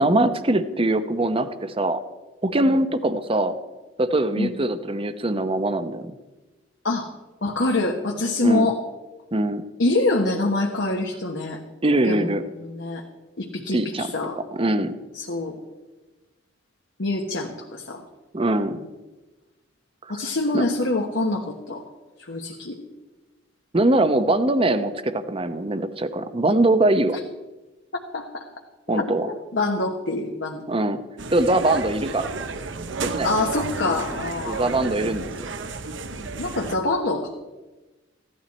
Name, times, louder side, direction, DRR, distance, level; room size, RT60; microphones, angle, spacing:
voice 1, 0.0-2.0 2.4-3.5 4.0-6.1 8.4-8.7 9.3-9.6 11.8-12.4 13.7-14.1 14.4-14.9 18.3-18.8 20.0-20.2 20.5-20.6 23.7-27.2 28.9-29.3 30.7-31.0 31.3-32.5 33.0-33.3 34.5-35.3, right 1 dB, 30° right, 11 dB, 0.8 m, -22 dB
voice 2, 7.4-8.8 9.8-11.6 12.0-13.0 13.4-14.4 15.1-15.6 17.0-18.0 20.1-21.8 22.2-22.8 28.1-28.4 28.9-30.7 33.2-34.6 36.1-37.5, left 2 dB, 70° left, 1 dB, 1.3 m, -25 dB
sound 1, 31.2-36.8, right 4 dB, 75° right, 0.8 m, -32 dB
15.5 x 12.0 x 4.2 m, 1.1 s
head